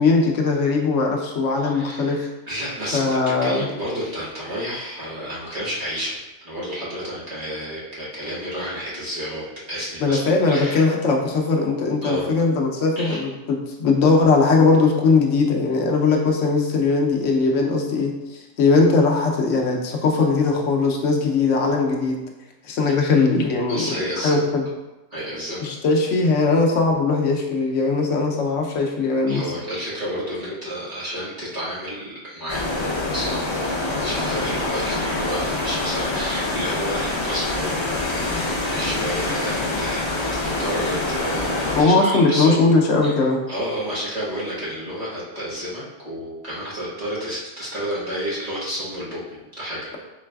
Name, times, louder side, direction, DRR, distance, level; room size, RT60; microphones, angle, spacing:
voice 1, 0.0-2.3 2.9-3.7 10.0-18.1 18.6-22.2 22.7-23.9 24.2-24.7 25.6-29.4 41.8-43.4, left 3 dB, 75° left, 1 dB, 1.0 m, -19 dB
voice 2, 1.5-10.9 12.0-12.3 12.9-13.2 23.6-24.4 25.1-25.7 29.3-40.0 40.3-42.7 43.0-43.1 43.5-50.0, equal, 35° right, -9 dB, 1.3 m, -31 dB
sound 1, 32.5-41.8, left 2 dB, 50° left, 0.3 m, -25 dB
4.6 x 3.2 x 2.3 m, 1.1 s
omnidirectional pair, 1.3 m